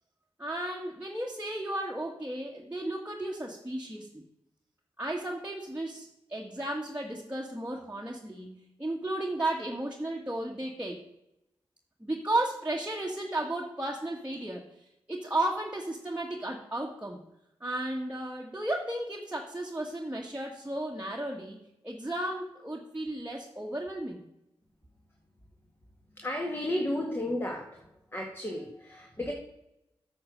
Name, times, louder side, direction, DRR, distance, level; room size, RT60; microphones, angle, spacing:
voice 1, 0.4-4.2 5.0-11.0 12.0-14.6 15.1-17.2 17.6-21.6 21.8-24.2, right 1 dB, 15° right, -3 dB, 1.6 m, -34 dB
voice 2, 26.2-27.8 28.1-29.3, left 1 dB, 20° left, 0 dB, 2.0 m, -33 dB
8.6 x 6.4 x 6.4 m, 0.82 s
cardioid pair, 50°, 10 cm